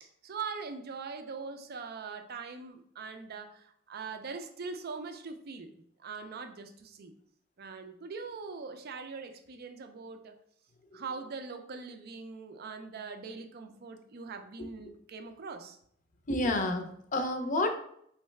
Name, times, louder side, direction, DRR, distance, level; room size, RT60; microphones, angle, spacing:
voice 1, 0.2-7.1 7.6-10.3 10.9-15.8, right 4 dB, 50° right, 7 dB, 0.5 m, -42 dB
voice 2, 16.3-17.7, left 2 dB, 40° left, 6 dB, 0.5 m, -29 dB
4.6 x 3.2 x 3.2 m, 0.68 s
head